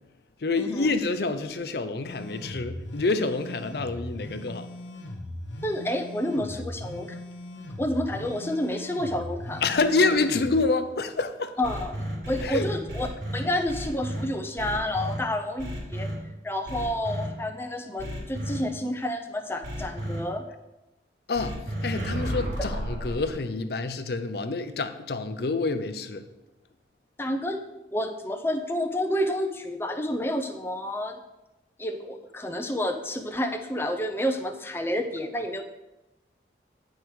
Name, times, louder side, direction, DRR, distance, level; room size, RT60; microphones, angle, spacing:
voice 1, 0.4-4.7 9.6-11.6 12.4-12.7 21.3-26.3, left 3 dB, 60° left, 0.6 m, -27 dB
sound 1, 2.0-10.6, left 1 dB, 85° left, 0.9 m, -39 dB
voice 2, 5.6-7.1 7.8-9.6 11.6-13.1 13.3-16.1 16.4-20.5 22.3-22.4 27.2-27.6 27.9-31.2 31.8-35.6, left 1 dB, 15° left, 0.5 m, -29 dB
sound 2, 11.6-14.2 14.6-15.2 15.6-16.1 16.7-17.3 18.0-18.6 19.6-20.2 21.3-23.3, equal, 80° right, 2.8 m, -32 dB
9.7 x 4.5 x 4.7 m
head